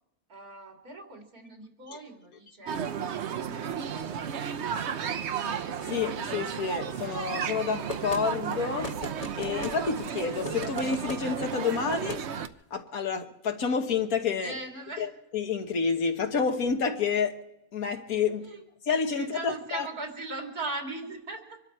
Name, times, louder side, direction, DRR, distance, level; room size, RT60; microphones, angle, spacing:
voice 1, 0.3-5.0 14.4-15.1 18.4-18.6 19.2-21.6, right 3 dB, 85° right, 3.3 m, -40 dB
sound 1, 2.7-12.5, right 8 dB, 55° right, 0.9 m, -33 dB
voice 2, 5.8-8.9 9.4-12.3 12.7-14.5 15.0-17.4 17.7-18.5 18.9-19.9, left 5 dB, 75° left, 1.8 m, -29 dB
sound 2, 7.9-8.2 8.8-9.8 10.4-11.2 11.9-12.2, left 2 dB, 30° left, 1.0 m, -37 dB
25.5 x 12.0 x 4.4 m
omnidirectional pair, 1.5 m